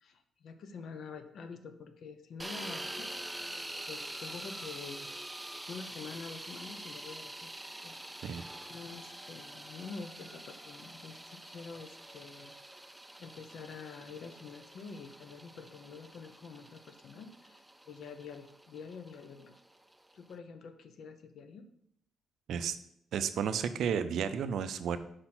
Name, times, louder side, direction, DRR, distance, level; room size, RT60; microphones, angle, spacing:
voice 1, 0.0-3.5 3.9-5.1 5.7-7.5 7.8-8.4 8.7-12.5 13.2-19.5 20.1-21.6, left 5 dB, 60° left, 8 dB, 0.7 m, -47 dB
sound 1, 2.4-20.3, right 1 dB, 5° right, 0.3 m, -46 dB
voice 2, 23.1-25.0, right 7 dB, 70° right, 12 dB, 0.4 m, -32 dB
5.6 x 5.0 x 4.4 m, 0.73 s
cardioid pair, 150°, 0 cm